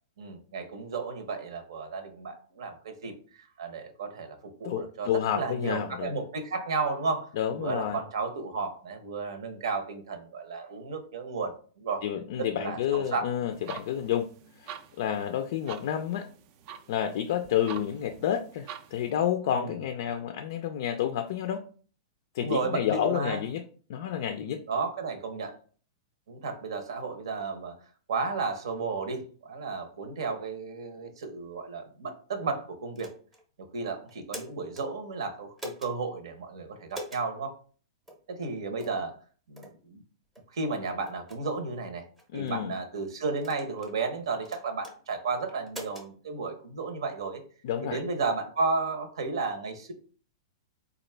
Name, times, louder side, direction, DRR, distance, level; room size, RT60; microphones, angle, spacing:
voice 1, 0.2-3.1 3.4-7.3 7.6-12.0 12.4-13.3 19.5-19.7 22.4-23.4 24.7-25.5 26.3-27.7 28.1-33.1 33.7-37.5 38.3-39.1 39.5-40.0 40.5-42.0 42.3-47.4 47.8-49.9, right 4 dB, 80° right, 7 dB, 0.8 m, -33 dB
voice 2, 4.6-6.1 7.3-8.0 12.0-14.3 14.6-16.3 16.9-21.6 22.3-23.6 23.9-24.6 42.3-42.7 47.6-48.0, left 10 dB, 55° left, 7 dB, 0.3 m, -30 dB
sound 1, 13.5-19.1, right 8 dB, 35° right, 0.3 m, -46 dB
sound 2, 33.0-33.4 34.1-34.9 35.6-35.9 36.9-37.3 38.1-38.2 38.8-39.0 39.6-39.8 40.4-40.5 41.1-41.4 42.2-42.6 43.4-44.0 44.5-45.0 45.7-46.1, equal, 5° right, 0.7 m, -43 dB
4.0 x 2.4 x 3.2 m, 0.42 s
supercardioid pair, 160°, 3 cm